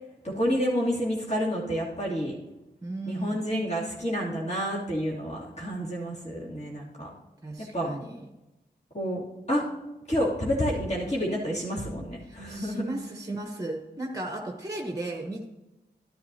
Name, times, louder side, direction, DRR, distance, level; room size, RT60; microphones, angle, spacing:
voice 1, 0.2-2.3 3.0-7.1 7.6-7.9 8.9-9.2 9.5-9.6 10.1-12.8, equal, 40° left, -6 dB, 2.8 m, -29 dB
voice 2, 2.8-3.4 7.4-8.3 12.2-15.4, right 2 dB, 20° right, 1 dB, 1.1 m, -35 dB
12.0 x 11.0 x 2.8 m, 1.0 s
wide cardioid pair, 70°, 17 cm